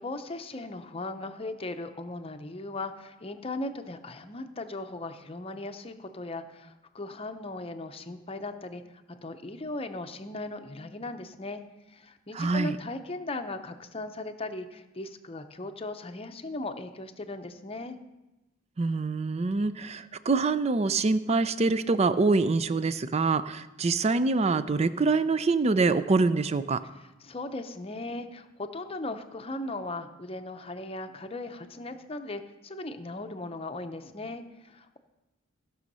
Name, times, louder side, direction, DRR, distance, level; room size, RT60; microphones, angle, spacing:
voice 1, 0.0-8.8 9.1-11.6 11.9-18.0 26.9-35.0, left 2 dB, 30° left, 7 dB, 0.7 m, -38 dB
voice 2, 12.3-12.8 18.8-26.8, right 3 dB, 30° right, 14 dB, 0.4 m, -25 dB
15.5 x 6.3 x 5.5 m, 1.0 s
head